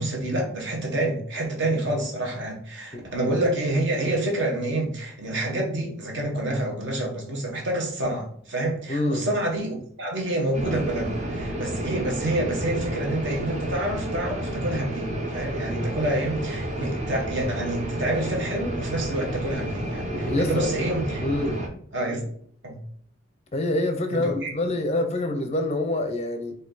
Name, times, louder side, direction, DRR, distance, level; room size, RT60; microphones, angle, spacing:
voice 1, 0.0-21.2 21.9-22.2 22.6-22.8 24.1-24.5, right 1 dB, 60° right, 1.2 m, -28 dB
voice 2, 8.9-9.3 15.7-15.8 20.1-20.7 21.2-21.6 23.5-26.5, left 1 dB, 30° left, 0.5 m, -26 dB
sound 1, 10.5-21.7, right 1 dB, 35° right, 0.7 m, -31 dB
4.2 x 2.7 x 3.9 m
head